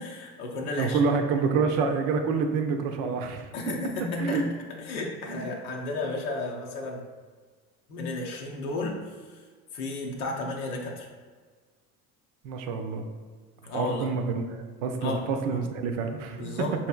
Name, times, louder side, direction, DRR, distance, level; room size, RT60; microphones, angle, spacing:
voice 1, 0.0-1.0 3.5-4.5 4.8-7.0 7.9-9.0 9.3-9.4 9.7-11.1 13.6-14.1 15.0-15.2 15.5-15.6 16.3-16.7, left 2 dB, 80° left, 0 dB, 0.7 m, -33 dB
voice 2, 0.8-3.5 4.2-4.4 5.3-5.5 6.1-6.2 12.4-13.1 13.7-16.4, right 5 dB, 65° right, 5 dB, 0.6 m, -27 dB
4.5 x 2.9 x 2.3 m, 1.5 s
hypercardioid pair, 65°, 44 cm